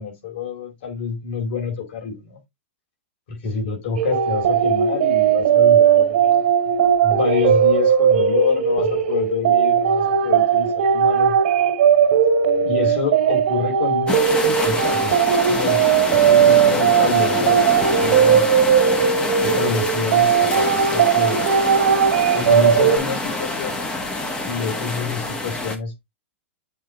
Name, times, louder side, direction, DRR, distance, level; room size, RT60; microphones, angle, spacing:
voice 1, 0.0-2.4 3.3-6.3 7.0-11.3 12.6-18.4 19.4-21.4 22.3-23.9 24.4-25.9, left 6 dB, 55° left, 4.4 m, -27 dB
sound 1, 4.0-23.0, right 8 dB, 60° right, 2.0 m, -17 dB
sound 2, 14.1-25.8, left 2 dB, 15° left, 1.3 m, -26 dB
7.9 x 3.4 x 3.9 m
hypercardioid pair, 145°, 7 cm